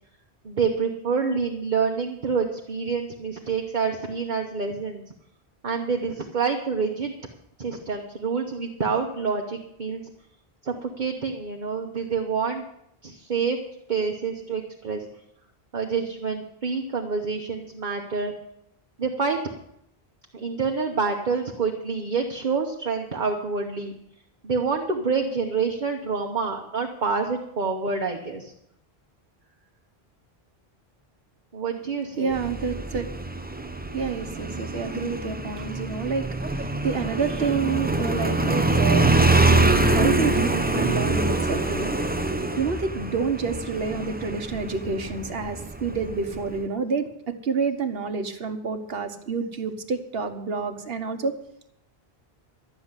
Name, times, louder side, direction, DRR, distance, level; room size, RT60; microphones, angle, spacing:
voice 1, 0.4-5.0 5.6-7.1 7.6-10.0 10.6-12.6 13.0-13.6 13.9-15.1 15.7-18.3 19.0-19.4 20.3-23.9 24.4-28.5 31.5-32.4, right 5 dB, 50° right, 2 dB, 1.2 m, -27 dB
voice 2, 32.2-33.1 33.9-42.0 42.6-51.3, right 5 dB, 70° right, 7 dB, 1.4 m, -28 dB
Motorcycle, 32.3-46.6, right 2 dB, 10° right, 0.6 m, -25 dB
12.5 x 7.0 x 9.7 m, 0.77 s
omnidirectional pair, 1.1 m